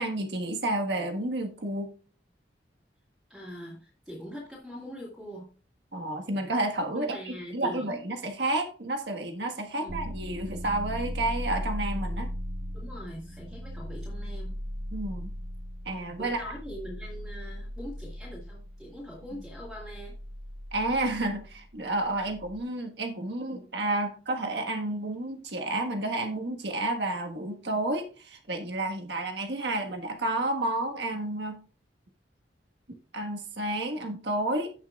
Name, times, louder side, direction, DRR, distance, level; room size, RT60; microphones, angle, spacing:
voice 1, 0.0-1.9 5.9-12.3 14.9-15.3 15.8-16.5 20.7-31.6 33.1-34.7, right 2 dB, 70° right, 1.5 m, -31 dB
voice 2, 3.3-5.5 6.9-8.0 9.8-10.0 12.7-14.6 16.2-20.1 22.2-22.3, equal, ahead, 2.3 m, -42 dB
sound 1, 9.9-22.6, equal, 35° right, 1.0 m, -38 dB
16.5 x 5.7 x 2.4 m
head